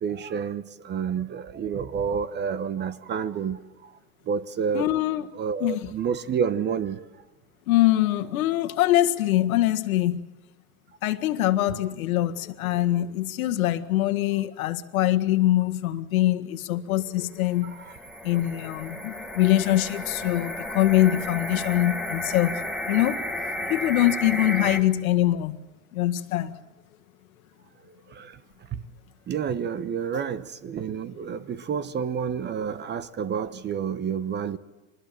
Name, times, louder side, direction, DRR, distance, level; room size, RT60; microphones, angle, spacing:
voice 1, 0.0-3.6 4.3-4.9 5.3-7.0 17.6-17.9 28.1-28.4 28.7-28.8 29.3-34.6, right 7 dB, 25° right, 1.1 m, -29 dB
voice 2, 4.7-5.3 5.6-5.9 7.7-10.2 11.0-17.7 18.2-22.5 22.9-23.2 23.7-25.6 25.9-26.5, left 14 dB, 80° left, 1.8 m, -23 dB
sound 1, 17.4-24.8, left 1 dB, ahead, 1.7 m, -33 dB
24.5 x 20.5 x 7.5 m
supercardioid pair, 125°, 42 cm